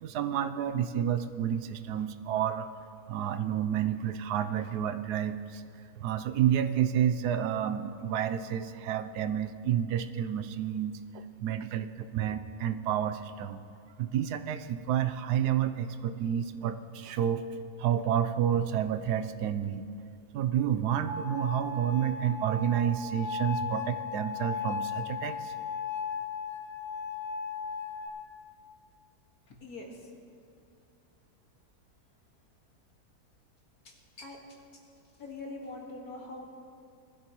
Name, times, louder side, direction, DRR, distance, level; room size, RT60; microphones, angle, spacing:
voice 1, 0.0-2.7 3.1-5.6 6.0-13.6 14.0-17.4 17.8-19.9 20.3-25.5, right 9 dB, 85° right, 10 dB, 1.2 m, -30 dB
sound 1, 21.1-28.1, left 5 dB, 65° right, 3.0 m, -36 dB
voice 2, 29.5-30.2 33.8-34.8 35.2-36.5, left 2 dB, 70° left, -1 dB, 2.3 m, -44 dB
20.0 x 13.0 x 3.1 m, 2.4 s
omnidirectional pair, 1.7 m